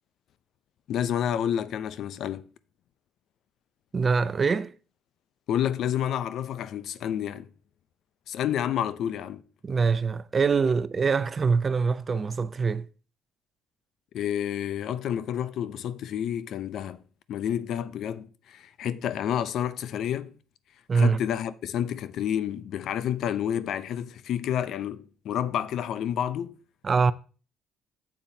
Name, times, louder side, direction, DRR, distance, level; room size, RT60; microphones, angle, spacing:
voice 1, 0.9-2.5 5.5-7.5 8.3-9.4 14.1-17.0 17.3-20.3 20.9-26.6, left 10 dB, 65° left, 0.5 m, -29 dB
voice 2, 3.9-4.7 9.6-12.9 20.9-21.2 26.8-27.1, right 5 dB, 35° right, 0.5 m, -24 dB
8.7 x 7.3 x 2.7 m
supercardioid pair, 70°, 0 cm